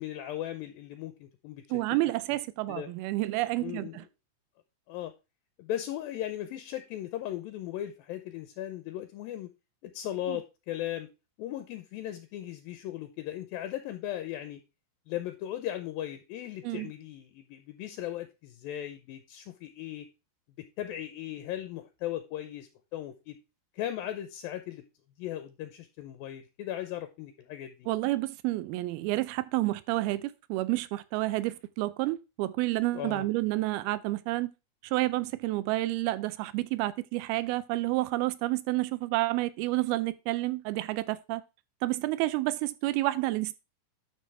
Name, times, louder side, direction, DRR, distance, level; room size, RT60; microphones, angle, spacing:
voice 1, 0.0-1.6 2.7-2.9 3.6-4.0 4.9-5.1 5.6-9.5 9.8-11.1 11.4-14.6 15.1-20.1 20.8-23.4 23.7-24.8 25.2-27.9 32.9-33.3, left 12 dB, 80° left, 2.2 m, -37 dB
voice 2, 1.7-4.0 10.3-10.4 16.6-16.9 27.9-34.5 34.8-41.4 41.8-43.6, right 18 dB, 80° right, 2.3 m, -30 dB
11.0 x 5.4 x 3.3 m
omnidirectional pair, 4.7 m